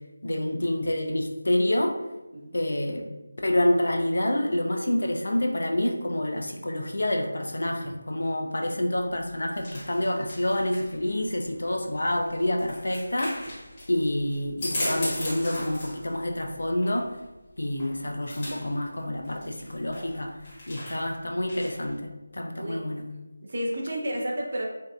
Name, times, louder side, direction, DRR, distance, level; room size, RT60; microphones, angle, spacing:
voice 1, 0.2-2.0 2.5-3.1 3.4-13.5 13.9-17.1 17.6-20.3 20.7-23.0, left 1 dB, 60° left, 2 dB, 0.4 m, -27 dB
sound 1, 9.0-22.0, left 1 dB, 25° left, 0.8 m, -38 dB
voice 2, 19.3-19.6 22.5-22.9 23.4-24.6, equal, 45° right, -2 dB, 0.5 m, -32 dB
3.0 x 2.6 x 2.4 m, 1.0 s
figure-of-eight pair, 160°, 0 cm